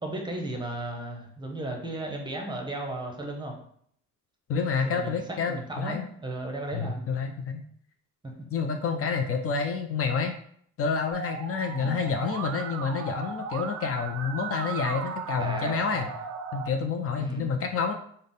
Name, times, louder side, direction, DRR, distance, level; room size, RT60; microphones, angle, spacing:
voice 1, 0.0-3.5 4.8-7.0 8.2-8.5 11.8-12.0 15.4-15.9 17.2-17.5, right 1 dB, 15° right, 2 dB, 0.8 m, -35 dB
voice 2, 4.5-6.1 6.7-7.6 8.5-10.3 10.8-16.1 16.5-17.9, left 5 dB, 50° left, 5 dB, 0.4 m, -28 dB
Musical instrument, 11.1-16.7, right 6 dB, 60° right, 0.5 m, -36 dB
3.4 x 2.1 x 3.9 m, 0.64 s
cardioid pair, 90°, 30 cm